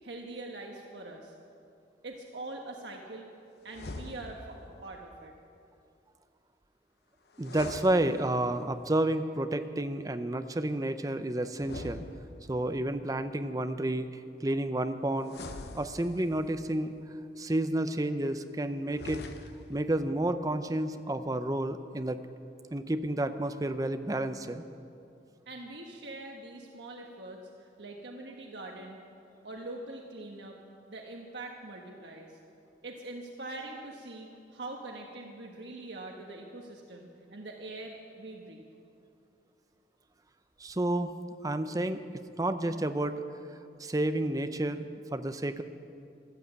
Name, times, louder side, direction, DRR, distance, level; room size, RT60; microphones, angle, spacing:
voice 1, 0.0-1.3 2.0-3.3 3.6-5.3 25.5-29.0 29.4-30.6 30.9-32.4 32.8-38.7, right 2 dB, 80° right, 0 dB, 1.3 m, -43 dB
sound 1, 3.7-4.6 7.3-8.7 11.6-12.7 15.2-16.5 18.8-19.8, left 2 dB, 65° left, 0.8 m, -43 dB
voice 2, 7.4-12.0 12.5-15.3 15.7-16.9 17.4-19.3 19.7-22.2 22.7-24.6 40.6-41.1 41.4-42.0 42.4-43.2 43.8-44.8 45.1-45.6, right 1 dB, 20° right, 9 dB, 0.6 m, -30 dB
13.5 x 12.5 x 8.0 m, 2.6 s
head